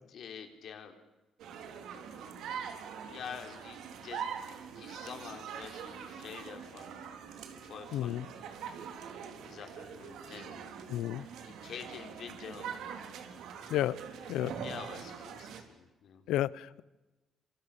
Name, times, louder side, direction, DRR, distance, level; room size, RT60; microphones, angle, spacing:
voice 1, 0.1-0.9 1.6-1.7 1.9-4.3 4.8-7.0 7.6-8.3 9.4-11.1 11.4-12.9 14.6-16.2, left 7 dB, 65° left, 5 dB, 4.1 m, -47 dB
sound 1, 1.4-15.6, right 7 dB, 85° right, 3.9 m, -43 dB
voice 2, 7.9-8.3 10.9-11.3 13.7-14.0 14.3-14.6 16.3-16.8, left 13 dB, 90° left, 20 dB, 0.9 m, -31 dB
27.0 x 27.0 x 7.5 m, 1.1 s
cardioid pair, 90°, 0 cm